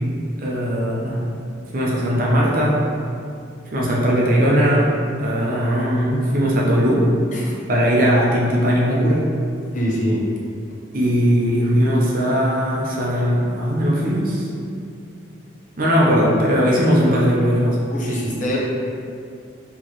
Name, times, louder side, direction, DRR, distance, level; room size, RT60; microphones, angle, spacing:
voice 1, 0.4-1.2 1.7-2.8 3.7-4.9 5.2-7.1 7.7-9.3 10.9-14.5 15.8-17.8, equal, 45° right, -4 dB, 0.7 m, -18 dB
voice 2, 9.7-10.2 17.9-18.6, equal, 40° left, -5 dB, 0.7 m, -24 dB
4.6 x 3.0 x 3.0 m, 2.4 s
head